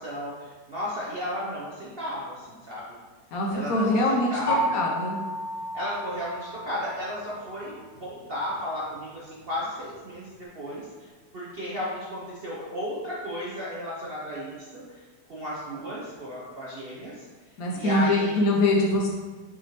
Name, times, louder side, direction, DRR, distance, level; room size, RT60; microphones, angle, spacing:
voice 1, 0.0-2.8 3.5-4.8 5.7-15.0 15.3-17.3 17.7-18.6, left 1 dB, 55° right, -7 dB, 0.7 m, -34 dB
voice 2, 3.3-5.2 17.6-19.1, left 1 dB, 65° left, -1 dB, 1.0 m, -24 dB
sound 1, 4.5-7.2, right 1 dB, 50° left, 1.5 m, -31 dB
5.8 x 3.0 x 3.0 m, 1.4 s
omnidirectional pair, 1.9 m